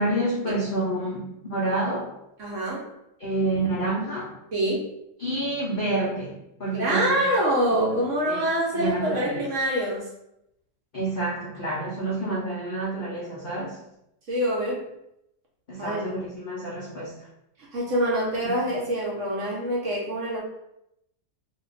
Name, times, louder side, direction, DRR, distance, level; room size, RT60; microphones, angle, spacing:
voice 1, 0.0-2.1 3.2-4.4 5.2-7.2 8.3-8.4 8.7-9.4 10.9-13.8 15.7-17.1 18.4-18.6, right 2 dB, 70° left, -6 dB, 0.5 m, -28 dB
voice 2, 2.4-2.9 4.5-4.8 6.7-10.1 14.3-14.9 15.8-16.0 17.7-20.4, right 1 dB, 55° right, -4 dB, 0.9 m, -25 dB
2.8 x 2.2 x 3.8 m, 0.82 s
omnidirectional pair, 1.8 m